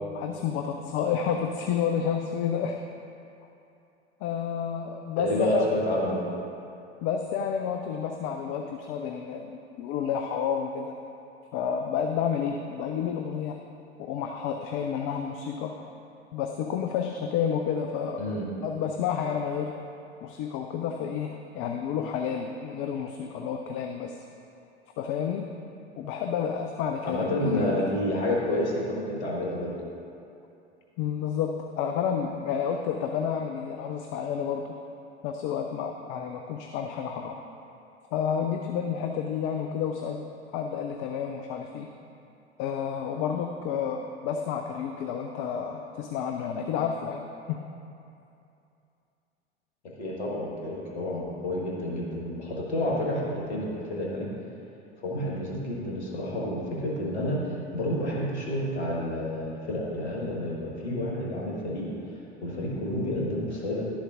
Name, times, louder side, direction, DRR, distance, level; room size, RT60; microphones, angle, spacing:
voice 1, 0.2-2.8 4.2-5.7 7.0-10.9 11.5-13.6 14.0-15.9 16.3-18.2 18.6-19.8 20.2-24.2 25.0-25.5 26.0-27.7 31.0-34.7 35.2-37.4 38.1-40.2 40.5-41.9 42.6-47.2 47.5-47.6, left 7 dB, 40° left, 4 dB, 0.5 m, -30 dB
voice 2, 5.2-6.3 18.2-18.5 27.0-29.7 50.0-54.3 55.0-57.4 57.7-61.9 62.4-63.8, left 1 dB, 70° left, -4 dB, 1.7 m, -29 dB
11.5 x 7.1 x 2.5 m, 2.7 s
figure-of-eight pair, 75°, 34 cm